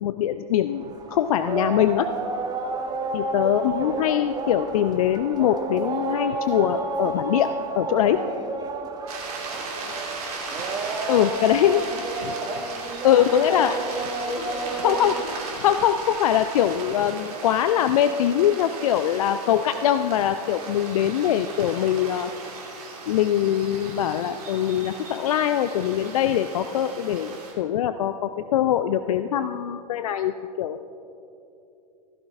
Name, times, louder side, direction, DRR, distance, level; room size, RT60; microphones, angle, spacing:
voice 1, 0.0-2.1 3.1-8.3 11.1-11.9 13.0-13.7 14.8-15.1 15.6-22.3 23.1-30.8, left 10 dB, 60° left, 11 dB, 0.4 m, -22 dB
sound 1, 0.7-17.1, right 3 dB, 20° right, 0.9 m, -31 dB
voice 2, 3.3-3.6 9.7-10.1 11.8-12.3 13.1-15.5, left 3 dB, 80° left, 4 dB, 1.5 m, -39 dB
sound 2, 9.1-27.5, right 3 dB, 60° right, 2.9 m, -37 dB
16.0 x 14.5 x 2.4 m, 2.8 s
figure-of-eight pair, 100°, 21 cm